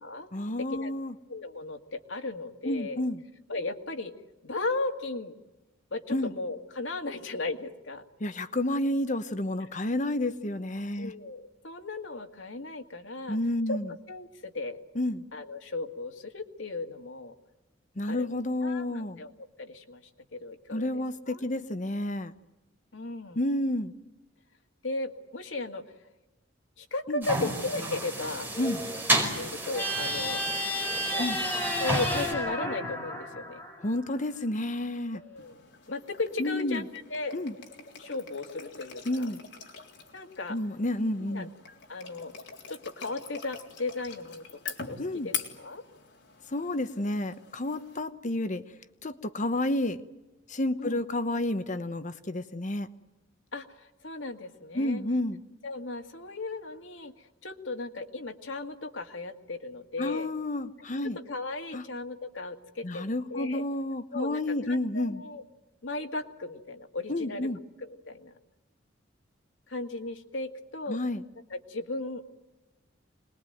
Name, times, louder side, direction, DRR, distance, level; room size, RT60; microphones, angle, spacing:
voice 1, 0.3-1.1 2.6-3.2 6.1-6.3 8.2-11.1 13.3-13.9 14.9-15.2 18.0-19.2 20.7-22.3 23.4-23.9 27.1-27.5 28.6-28.8 31.2-31.4 33.8-35.2 36.4-36.8 37.3-37.5 39.1-39.4 40.5-41.5 45.0-45.3 46.5-48.6 49.0-50.0 50.5-52.9 54.7-55.4 60.0-61.2 61.7-61.8 62.8-65.2 67.1-67.6 70.9-71.2, left 1 dB, 40° left, 10 dB, 1.0 m, -30 dB
voice 2, 1.3-3.0 3.5-4.1 4.4-5.3 5.9-8.0 11.0-13.4 13.7-13.8 14.1-14.8 15.3-17.3 18.1-19.3 19.6-20.0 20.3-21.0 21.3-21.4 22.9-23.4 24.8-25.8 26.8-28.5 29.1-30.4 31.1-31.3 31.8-33.6 35.1-35.6 35.9-37.4 38.0-39.3 40.1-40.6 41.3-41.5 41.9-42.3 42.7-44.4 44.9-45.8 50.8-51.0 53.5-55.0 55.6-60.3 61.3-63.6 64.1-65.4 65.8-67.5 67.8-68.3 69.7-71.0 71.5-72.2, left 3 dB, 80° left, 4 dB, 2.2 m, -36 dB
sound 1, 27.2-32.3, right 1 dB, 10° right, 4.9 m, -32 dB
sound 2, 29.7-34.2, left 1 dB, 10° left, 5.2 m, -32 dB
sound 3, 35.4-48.0, left 7 dB, 65° left, 3.7 m, -44 dB
26.5 x 21.0 x 9.3 m, 1.0 s
head